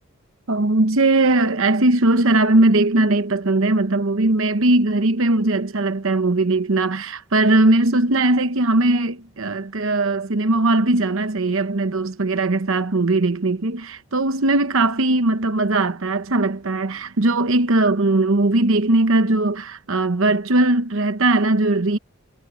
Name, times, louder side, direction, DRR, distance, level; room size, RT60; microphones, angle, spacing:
voice 1, 0.5-22.0, right 2 dB, 65° right, 1.0 m, -19 dB
head